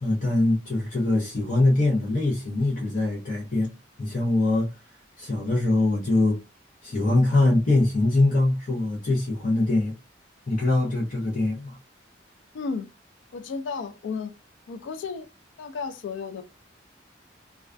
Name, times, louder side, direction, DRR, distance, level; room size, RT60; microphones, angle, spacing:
voice 1, 0.0-3.7 4.0-4.8 5.2-6.4 6.8-9.9 10.5-11.8, left 2 dB, 45° left, 0.7 m, -23 dB
voice 2, 12.5-12.9 13.3-14.3 14.7-15.3 15.6-16.4, left 5 dB, 90° left, 0.3 m, -33 dB
2.3 x 2.3 x 2.4 m
head